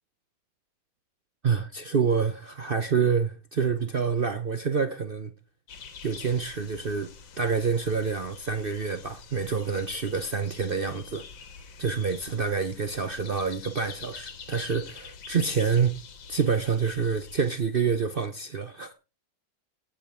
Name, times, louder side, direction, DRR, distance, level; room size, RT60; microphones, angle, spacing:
voice 1, 1.4-5.3 6.0-7.1 7.4-11.2 11.8-16.0 16.3-18.9, right 5 dB, 70° right, 0.5 m, -27 dB
sound 1, 5.7-17.5, left 5 dB, 80° left, 2.1 m, -46 dB
17.0 x 6.1 x 3.5 m
omnidirectional pair, 2.1 m